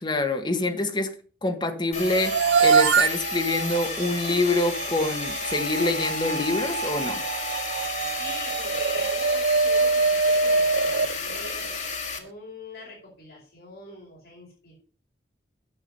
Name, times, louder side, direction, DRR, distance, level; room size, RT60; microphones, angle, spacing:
voice 1, 0.0-1.1 1.4-7.2, left 2 dB, 25° left, 1.4 m, -26 dB
sound 1, 1.9-12.2, left 5 dB, 45° left, 1.8 m, -33 dB
sound 2, 2.0-12.1, right 4 dB, 85° right, 0.6 m, -25 dB
voice 2, 8.1-11.7 12.1-14.7, left 2 dB, 60° left, 5.2 m, -44 dB
11.0 x 7.2 x 5.4 m
head